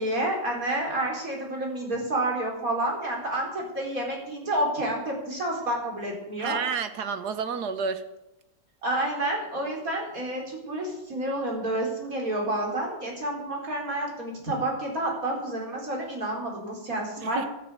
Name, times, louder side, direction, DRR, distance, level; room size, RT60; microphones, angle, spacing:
voice 1, 0.0-6.6 8.8-17.5, right 1 dB, 55° right, -1 dB, 4.9 m, -29 dB
voice 2, 6.4-8.1 17.2-17.5, right 6 dB, 75° right, 10 dB, 1.7 m, -30 dB
12.5 x 10.5 x 8.4 m, 0.91 s
omnidirectional pair, 1.8 m